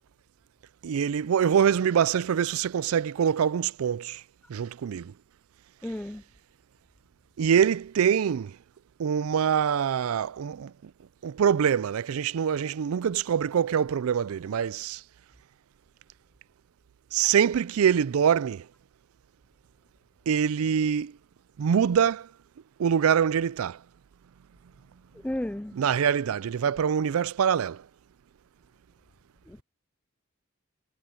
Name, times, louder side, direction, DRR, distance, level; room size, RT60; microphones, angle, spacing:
voice 1, 0.8-4.2 4.5-5.1 7.4-8.5 9.0-10.7 11.2-15.0 17.1-18.6 20.3-21.1 21.6-22.3 22.8-23.8 25.8-27.8, right 8 dB, 85° right, 0.4 m, -24 dB
voice 2, 5.8-6.2 25.2-25.8 29.5-29.6, left 1 dB, 5° left, 0.3 m, -33 dB
head